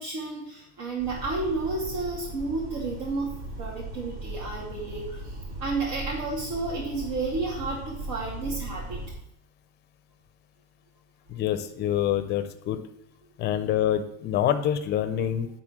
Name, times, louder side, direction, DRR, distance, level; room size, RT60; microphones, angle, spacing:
voice 1, 0.0-3.3 3.6-9.0, right 3 dB, 85° right, -5 dB, 2.5 m, -31 dB
sound 1, 1.0-9.1, right 1 dB, 60° right, 2.9 m, -38 dB
voice 2, 11.3-12.8 13.4-15.5, left 10 dB, 25° left, 9 dB, 0.4 m, -26 dB
9.6 x 3.9 x 6.0 m, 0.80 s
cardioid pair, 165°, 44 cm